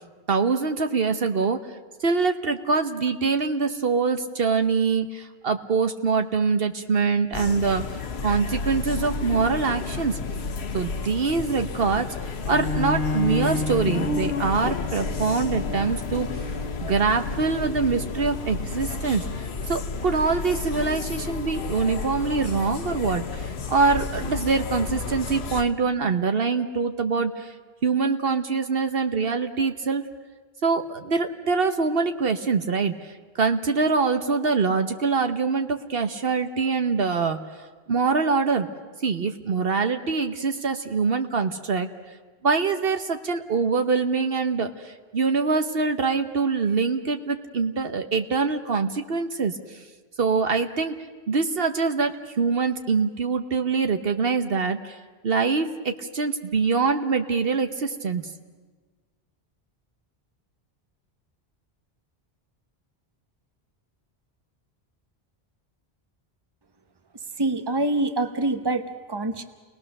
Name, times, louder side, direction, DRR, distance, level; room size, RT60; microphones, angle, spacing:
voice 1, 0.3-1.6 2.0-10.2 10.7-12.1 12.5-16.3 16.8-19.3 19.7-27.5 27.8-30.0 30.6-37.4 37.9-38.7 39.0-41.9 42.4-49.6 50.2-51.0 51.3-55.0 55.2-58.3, right 4 dB, 65° right, 7 dB, 1.2 m, -24 dB
sound 1, 7.3-25.6, left 4 dB, 80° left, 1.2 m, -31 dB
Bowed string instrument, 12.4-18.1, left 3 dB, 60° left, 1.4 m, -32 dB
voice 2, 67.4-69.4, right 2 dB, 25° right, 8 dB, 1.1 m, -25 dB
29.5 x 20.0 x 6.6 m, 1.4 s
omnidirectional pair, 1.1 m